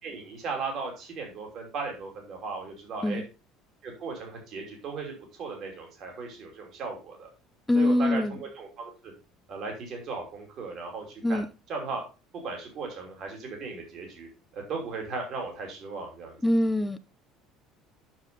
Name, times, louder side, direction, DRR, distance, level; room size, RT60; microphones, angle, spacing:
voice 1, 0.0-3.2 3.8-7.3 7.7-9.1 9.5-11.4 11.7-12.0 12.4-14.3 14.5-16.4, right 4 dB, 40° right, 1 dB, 2.9 m, -37 dB
voice 2, 7.7-8.4 11.2-11.5 16.4-17.0, left 1 dB, 5° left, 13 dB, 0.4 m, -24 dB
7.4 x 6.6 x 5.2 m, 0.31 s
cardioid pair, 175°, 0 cm